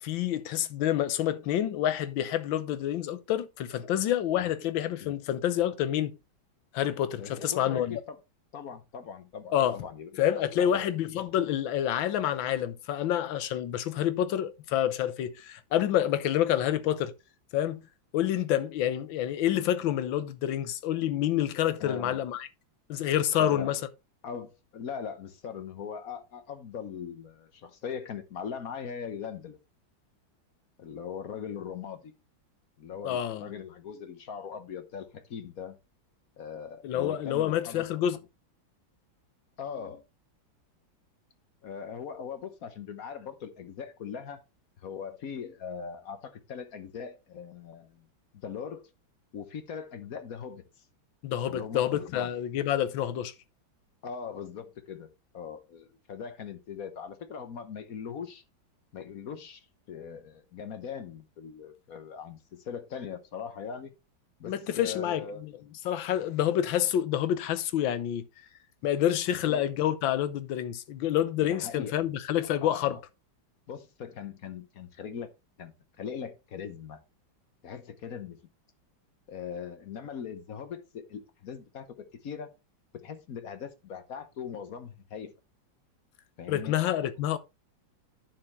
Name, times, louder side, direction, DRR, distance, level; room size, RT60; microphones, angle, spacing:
voice 1, 0.0-6.2 6.7-8.0 9.5-9.8 10.2-17.1 17.5-17.8 18.1-22.5 22.9-23.8 33.0-33.5 36.8-38.2 51.2-53.3 64.5-65.5 65.8-68.3 68.8-73.0 86.5-87.4, left 11 dB, 75° left, 1.5 m, -28 dB
voice 2, 7.2-8.2 8.5-10.8 21.8-22.2 23.4-23.7 24.2-29.6 30.8-32.1 32.8-35.8 36.4-37.8 39.6-40.0 41.6-44.4 44.8-48.1 48.3-48.8 49.3-50.6 51.5-52.3 54.0-55.1 55.3-58.4 58.9-59.6 59.9-63.9 64.4-65.4 69.5-69.7 71.4-72.0 72.6-73.0 73.7-75.3 75.6-77.0 77.6-78.4 79.3-82.5 83.0-85.3 86.4-86.8, left 7 dB, 55° left, 1.2 m, -40 dB
9.8 x 6.8 x 3.1 m
omnidirectional pair, 2.1 m